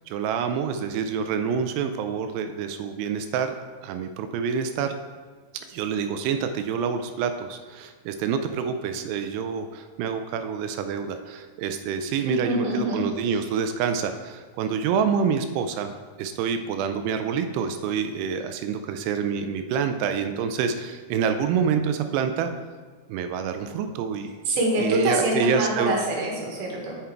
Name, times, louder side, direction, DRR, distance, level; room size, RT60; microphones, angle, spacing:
voice 1, 0.1-4.9 5.7-15.9 16.2-22.5 23.1-24.3 24.8-25.9, right 6 dB, 85° right, 8 dB, 2.6 m, -27 dB
voice 2, 12.3-13.0 24.5-27.0, right 1 dB, 70° right, -1 dB, 3.1 m, -25 dB
7.4 x 7.0 x 4.5 m, 1.5 s
omnidirectional pair, 4.8 m